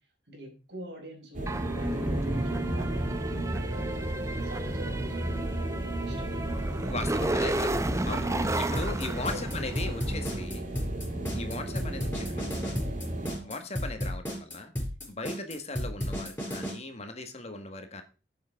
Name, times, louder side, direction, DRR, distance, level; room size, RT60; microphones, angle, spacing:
voice 1, 0.3-3.9 4.4-6.5 8.3-10.6 13.3-13.6, equal, 75° right, 2 dB, 4.8 m, -45 dB
sound 1, 1.3-13.4, right 1 dB, 50° right, 2.5 m, -33 dB
sound 2, 1.5-10.2, right 1 dB, 15° right, 0.7 m, -33 dB
voice 2, 6.8-7.7 8.1-8.3 8.6-10.7 11.3-12.7 13.4-14.7 15.1-18.0, left 3 dB, 40° left, 7 dB, 1.7 m, -38 dB
sound 3, 8.8-16.7, equal, 10° left, 4.5 m, -33 dB
10.5 x 7.8 x 3.7 m, 0.33 s
head